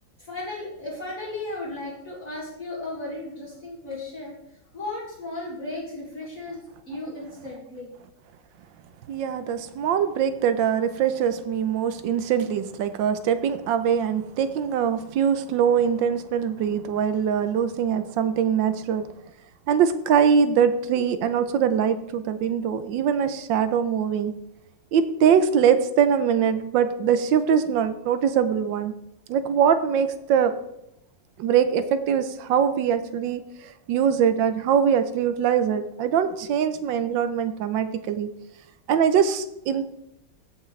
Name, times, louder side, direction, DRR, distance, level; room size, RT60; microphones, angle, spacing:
voice 1, 0.2-4.3 4.7-7.9, left 2 dB, 45° left, -7 dB, 2.4 m, -35 dB
voice 2, 9.1-19.1 19.7-24.3 24.9-28.9 29.3-30.5 31.4-38.3 38.9-39.8, right 8 dB, 75° right, 11 dB, 1.4 m, -22 dB
15.5 x 6.0 x 3.2 m, 0.83 s
omnidirectional pair, 2.1 m